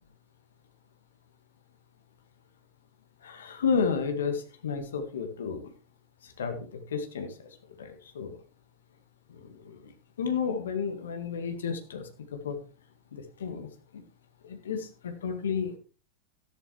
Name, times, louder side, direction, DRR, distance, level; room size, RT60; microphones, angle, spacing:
voice 1, 3.2-5.6 6.2-8.4 9.3-9.9 10.2-12.6 13.1-14.0 14.4-15.8, left 6 dB, 65° left, 7 dB, 1.7 m, -32 dB
13.0 x 12.0 x 3.1 m, 0.35 s
figure-of-eight pair, 90°, 0 cm